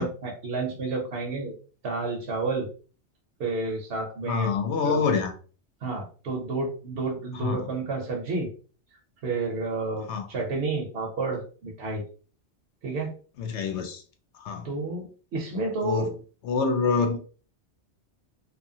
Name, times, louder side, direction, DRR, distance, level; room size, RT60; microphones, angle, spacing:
voice 1, 0.0-1.5 1.8-2.7 3.4-4.5 4.8-5.0 5.8-8.5 9.2-12.0 12.8-13.1 14.6-16.1, right 3 dB, 65° right, 0.9 m, -30 dB
voice 2, 4.2-5.3 7.4-7.6 10.1-10.3 13.4-14.0 14.4-14.6 15.8-16.1 16.4-17.2, left 5 dB, 75° left, 0.9 m, -26 dB
2.8 x 2.4 x 2.6 m
omnidirectional pair, 1.2 m